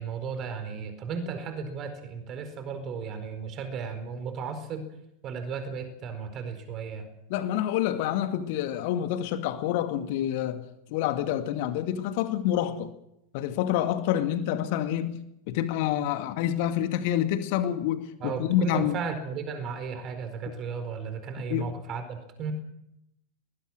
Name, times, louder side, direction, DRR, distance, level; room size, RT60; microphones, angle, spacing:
voice 1, 0.0-4.8 5.2-7.1 18.2-22.5, right 5 dB, 30° right, 9 dB, 4.5 m, -35 dB
voice 2, 7.3-10.6 10.9-12.9 13.3-15.2 15.5-18.9 21.5-21.7, left 11 dB, 50° left, 8 dB, 2.1 m, -27 dB
23.0 x 20.0 x 6.5 m, 0.81 s
figure-of-eight pair, 90°, 0 cm